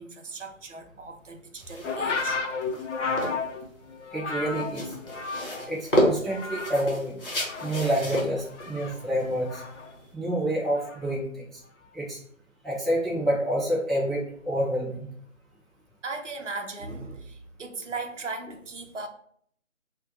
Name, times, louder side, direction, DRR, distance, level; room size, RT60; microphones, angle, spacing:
voice 1, 0.0-2.4 5.1-5.2 16.0-19.1, right 3 dB, 65° right, 5 dB, 0.6 m, -37 dB
sound 1, 1.6-10.1, equal, 45° left, 1.0 m, -31 dB
sound 2, 1.8-5.8 6.1-7.0 7.3-9.9 10.8-11.1, left 4 dB, 65° left, 0.6 m, -33 dB
voice 2, 4.1-4.9 5.7-7.2 7.6-9.6 10.1-11.6 11.9-12.2 12.6-15.1, right 1 dB, ahead, -6 dB, 0.4 m, -28 dB
2.6 x 2.1 x 3.9 m, 0.64 s
figure-of-eight pair, 170°, 40 cm